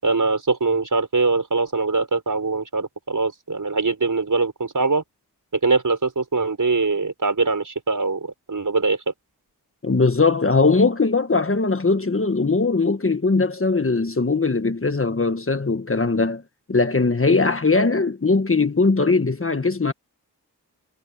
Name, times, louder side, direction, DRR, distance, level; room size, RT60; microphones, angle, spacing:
voice 1, 0.0-5.0 5.6-9.0, right 3 dB, 50° right, 6.9 m, -22 dB
voice 2, 9.8-16.4 16.7-19.9, left 3 dB, 35° left, 1.6 m, -20 dB
cardioid pair, 45°, 39 cm